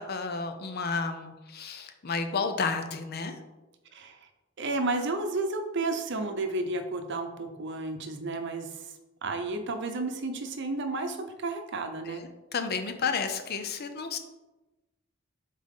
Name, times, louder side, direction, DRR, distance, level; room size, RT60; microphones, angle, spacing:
voice 1, 0.0-3.3 12.1-14.2, left 5 dB, 50° left, 7 dB, 0.6 m, -32 dB
voice 2, 4.6-8.7 9.2-12.2, right 2 dB, 60° right, 6 dB, 0.7 m, -32 dB
7.5 x 3.7 x 3.7 m, 1.1 s
head